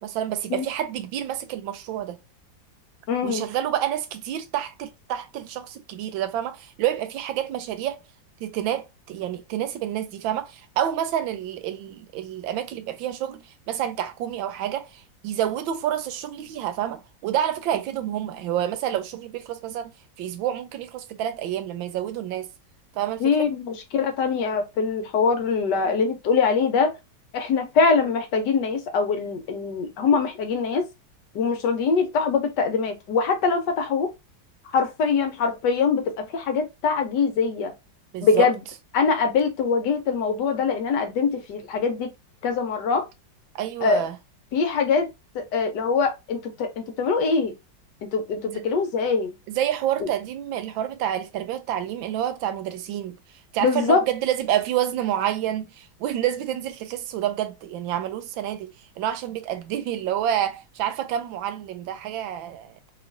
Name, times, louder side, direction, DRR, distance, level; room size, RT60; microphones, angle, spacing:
voice 1, 0.0-2.2 3.2-8.0 8.4-19.9 20.2-22.5 22.9-23.5 38.1-38.5 43.5-44.1 48.5-48.6 49.5-53.2 53.5-62.9, right 11 dB, 90° right, 1.4 m, -28 dB
voice 2, 3.1-3.5 23.2-26.9 27.3-30.9 31.3-34.1 34.7-37.7 38.2-38.6 38.9-42.1 42.4-43.1 43.8-44.0 44.5-45.1 45.3-47.5 48.0-49.3 50.0-50.1 53.6-54.0, left 5 dB, 70° left, 1.3 m, -23 dB
3.0 x 3.0 x 2.5 m
omnidirectional pair, 2.1 m